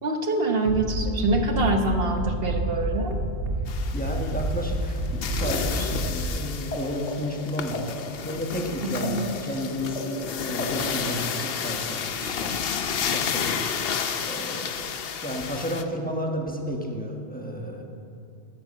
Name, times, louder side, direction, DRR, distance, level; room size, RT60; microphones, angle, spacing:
voice 1, 0.0-3.2 8.8-9.3, right 2 dB, 55° right, 4 dB, 1.3 m, -25 dB
Bass drum, 0.6-6.3, right 1 dB, 75° right, 1.4 m, -29 dB
sound 1, 3.7-15.8, left 7 dB, 60° left, 0.9 m, -31 dB
voice 2, 3.9-12.6 13.0-13.7 14.3-17.8, equal, 10° left, 0 dB, 1.3 m, -32 dB
sound 2, 5.4-6.8 7.0-11.5, left 3 dB, 90° left, 1.8 m, -36 dB
12.0 x 8.7 x 7.5 m, 2.4 s
omnidirectional pair, 1.2 m